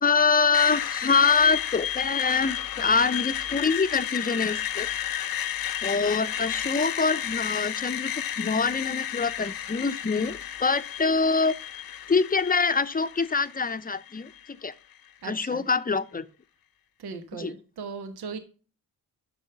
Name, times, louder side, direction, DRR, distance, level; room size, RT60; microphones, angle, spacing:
voice 1, 0.0-4.9 5.8-11.6 12.1-14.7 15.2-16.3 17.3-17.5, left 4 dB, 25° left, 0.7 m, -25 dB
Screech, 0.5-14.5, left 10 dB, 65° left, 0.8 m, -32 dB
voice 2, 15.2-15.6 17.0-18.4, right 5 dB, 75° right, 1.2 m, -38 dB
7.1 x 6.2 x 6.8 m
supercardioid pair, 55°, 38 cm